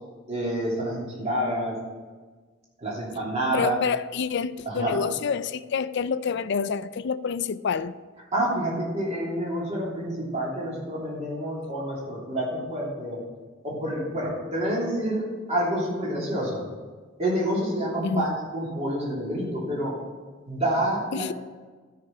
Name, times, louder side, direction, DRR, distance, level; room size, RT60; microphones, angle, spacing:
voice 1, 0.3-1.8 2.8-3.8 4.7-5.0 8.3-13.2 13.6-16.6 17.2-20.0 20.5-21.3, right 1 dB, 35° right, 3.1 m, -28 dB
voice 2, 3.5-7.9 18.0-18.3 21.1-21.3, left 6 dB, 60° left, 0.4 m, -27 dB
13.0 x 6.0 x 5.9 m
head